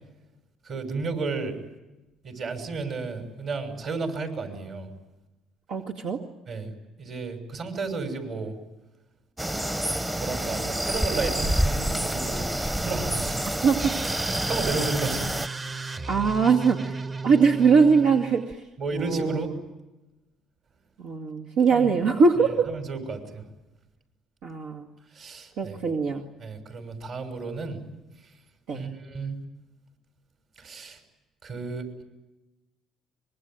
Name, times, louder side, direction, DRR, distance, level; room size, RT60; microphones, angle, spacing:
voice 1, 0.6-1.6 2.2-4.9 6.5-6.7 7.0-8.5 10.2-13.6 14.2-15.3 15.9-16.0 18.8-19.5 21.7-21.9 22.4-23.4 25.1-25.7 26.4-27.8 28.7-29.4 30.6-31.0 31.4-31.9, right 4 dB, 55° right, 5 dB, 6.3 m, -33 dB
voice 2, 5.7-6.2 13.6-13.9 16.1-18.6 18.9-19.5 21.0-22.7 24.4-24.9 25.6-26.2 28.7-28.9, right 5 dB, 90° right, -1 dB, 2.3 m, -22 dB
sound 1, 9.4-15.5, right 1 dB, 10° right, 0.9 m, -28 dB
sound 2, 13.8-18.5, right 3 dB, 30° right, 1.1 m, -35 dB
25.0 x 23.0 x 9.1 m, 1.0 s
cardioid pair, 95°, 0 cm